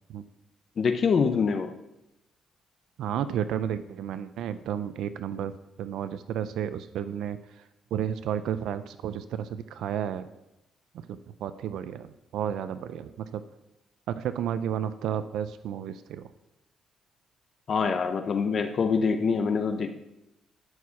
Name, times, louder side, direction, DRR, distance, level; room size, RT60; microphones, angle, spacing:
voice 1, 0.8-1.7 17.7-19.9, left 5 dB, 50° left, 6 dB, 0.7 m, -25 dB
voice 2, 3.0-10.3 11.1-13.4 14.1-16.3, right 9 dB, 80° right, 12 dB, 0.4 m, -32 dB
12.0 x 4.7 x 5.8 m, 0.90 s
cardioid pair, 90°, 0 cm